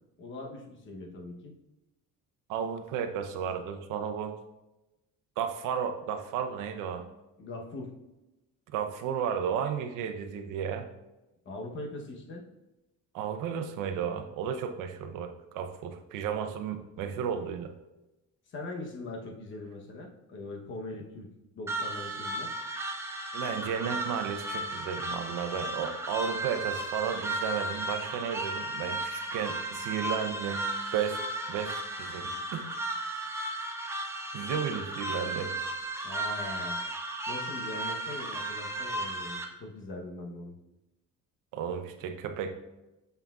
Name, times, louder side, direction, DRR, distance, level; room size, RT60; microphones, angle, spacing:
voice 1, 0.2-1.6 7.4-8.0 11.4-12.5 18.5-21.3 21.5-22.5 36.0-36.8 37.3-40.6, left 2 dB, 40° left, 1 dB, 0.9 m, -41 dB
voice 2, 2.5-4.3 5.4-7.0 8.7-10.9 13.1-17.7 23.3-30.6 30.9-31.2 31.5-32.7 34.3-35.5 41.5-42.5, right 7 dB, 85° right, 7 dB, 0.7 m, -33 dB
sound 1, 21.7-39.4, right 1 dB, 10° right, 0.4 m, -35 dB
6.8 x 5.8 x 2.4 m, 0.98 s
cardioid pair, 170°, 31 cm